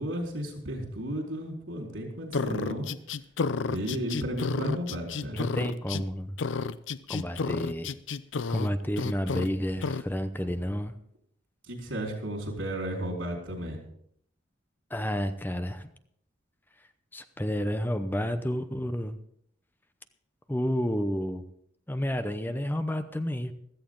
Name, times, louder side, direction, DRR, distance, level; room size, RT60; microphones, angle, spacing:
voice 1, 0.0-2.9 3.7-5.4 11.7-13.8, right 1 dB, 90° right, 1 dB, 4.3 m, -33 dB
sound 1, 2.3-6.0 6.4-8.7 9.0-9.5 9.8-10.0, left 4 dB, 75° left, 0.5 m, -31 dB
voice 2, 5.3-6.4 7.1-7.9 8.5-10.9 14.9-15.9 17.1-19.2 20.5-21.4 21.9-23.5, equal, 10° left, 9 dB, 0.7 m, -30 dB
16.0 x 13.5 x 3.8 m, 0.68 s
head